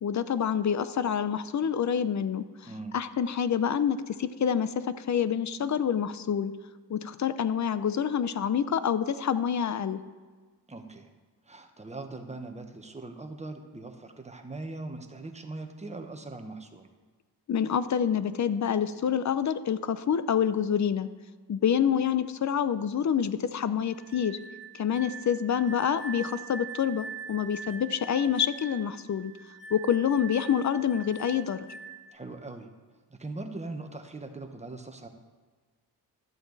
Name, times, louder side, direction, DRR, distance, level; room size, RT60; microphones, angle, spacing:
voice 1, 0.0-2.4 2.9-6.5 6.9-10.0 17.5-21.1 21.5-24.4 24.7-29.3 29.7-31.7, left 8 dB, 40° left, 14 dB, 0.6 m, -27 dB
voice 2, 2.6-3.0 10.7-11.1 11.4-16.9 32.1-32.7 33.1-35.1, right 2 dB, 15° right, 5 dB, 1.2 m, -40 dB
sound 1, 23.9-32.2, right 5 dB, 25° left, 2.0 m, -43 dB
12.5 x 7.8 x 4.1 m, 1.4 s
cardioid pair, 80°, 43 cm